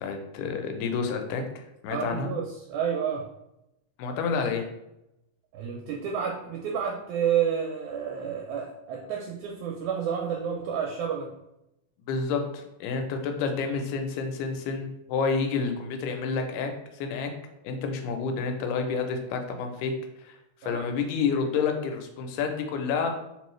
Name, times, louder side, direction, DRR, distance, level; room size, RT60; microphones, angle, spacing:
voice 1, 0.0-2.3 4.0-4.6 12.1-16.7 17.0-17.3 17.6-19.9 20.2-20.4 20.6-23.2, left 5 dB, 85° left, 5 dB, 2.2 m, -29 dB
voice 2, 1.9-3.3 5.5-11.3 20.6-20.8, right 8 dB, 80° right, -1 dB, 1.9 m, -30 dB
4.5 x 3.1 x 3.1 m, 0.87 s
omnidirectional pair, 3.6 m